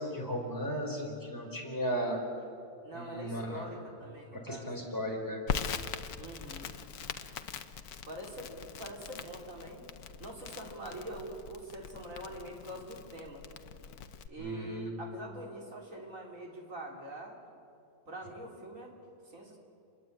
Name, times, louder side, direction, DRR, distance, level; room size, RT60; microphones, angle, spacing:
voice 1, 0.0-2.2 2.9-3.7 4.3-5.4 14.4-15.0, equal, 10° left, -1 dB, 4.9 m, -36 dB
voice 2, 2.8-4.7 6.2-6.8 8.0-9.8 10.2-13.4 14.3-17.4 18.1-19.0 19.3-19.6, right 1 dB, 55° right, 0 dB, 4.0 m, -44 dB
Crackle, 5.5-14.3, left 7 dB, 70° left, 1.4 m, -41 dB
28.0 x 21.5 x 8.8 m, 2.5 s
omnidirectional pair, 1.7 m